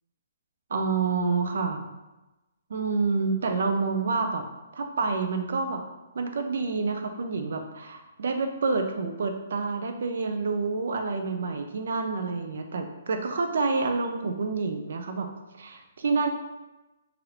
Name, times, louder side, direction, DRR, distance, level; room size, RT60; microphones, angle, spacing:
voice 1, 0.7-1.9 2.7-4.4 4.7-5.8 6.1-15.3 15.6-16.3, right 4 dB, 55° right, 5 dB, 0.4 m, -28 dB
3.1 x 2.4 x 3.1 m, 1.0 s
hypercardioid pair, 180°, 0 cm